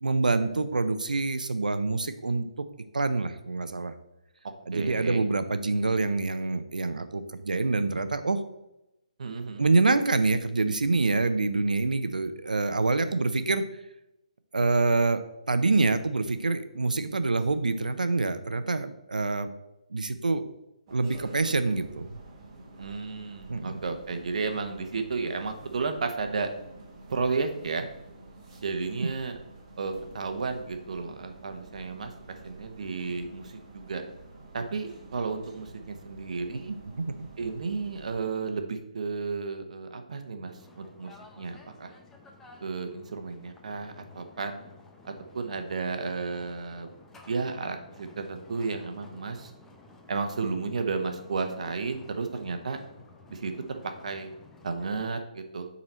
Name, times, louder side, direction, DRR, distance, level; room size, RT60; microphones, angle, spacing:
voice 1, 0.0-2.6 2.9-3.9 4.7-8.4 9.6-13.6 14.5-15.2 15.5-19.5 19.9-20.5 20.9-22.1 23.5-23.8 36.5-36.6 36.9-37.2, right 3 dB, 85° right, 10 dB, 0.7 m, -26 dB
voice 2, 4.7-5.3 9.2-9.7 22.8-26.5 27.1-27.9 28.6-29.4 29.8-32.1 32.4-34.0 34.5-36.7 37.4-41.1 41.4-41.9 42.6-44.6 45.0-46.9 47.3-49.5 50.1-52.8 53.3-53.5 53.8-54.3 54.6-55.7, right 4 dB, 60° right, 6 dB, 1.1 m, -33 dB
sound 1, 20.9-38.2, right 3 dB, 30° right, 1.6 m, -49 dB
sound 2, 40.5-55.2, left 3 dB, 10° left, 0.8 m, -53 dB
8.8 x 4.2 x 4.4 m, 0.91 s
figure-of-eight pair, 150°, 4 cm